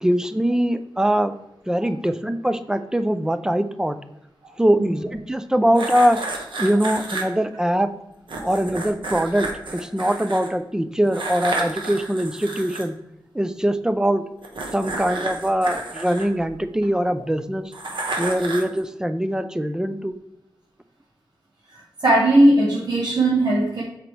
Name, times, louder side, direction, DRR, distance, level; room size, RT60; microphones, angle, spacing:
voice 1, 0.0-1.3 1.7-4.0 4.6-6.2 6.6-7.9 8.4-12.9 13.3-14.2 14.7-17.6 18.2-20.1, equal, 10° right, 10 dB, 0.4 m, -22 dB
sound 1, 5.8-7.2 8.3-10.5 11.1-12.8 14.4-16.9 17.7-18.8, right 2 dB, 75° right, 1.2 m, -31 dB
voice 2, 21.7-23.8, right 1 dB, 55° right, -5 dB, 1.3 m, -19 dB
7.5 x 5.2 x 3.2 m, 0.87 s
wide cardioid pair, 140°, 8 cm